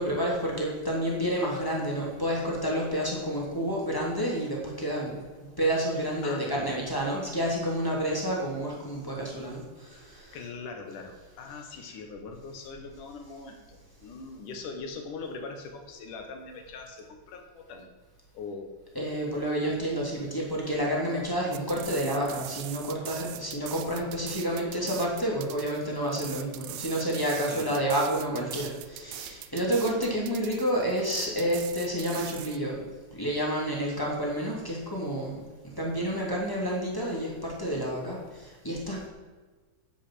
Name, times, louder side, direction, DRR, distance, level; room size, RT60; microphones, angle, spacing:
voice 1, 0.0-10.5 11.5-11.6 18.9-32.8 33.1-39.1, equal, 5° left, -3 dB, 1.7 m, -29 dB
voice 2, 6.2-6.8 10.3-17.9 18.3-18.8 27.5-27.8, left 4 dB, 60° left, 4 dB, 2.4 m, -41 dB
sound 1, 21.5-32.6, right 15 dB, 90° right, 3.2 m, -42 dB
11.0 x 8.3 x 7.7 m, 1.3 s
omnidirectional pair, 5.4 m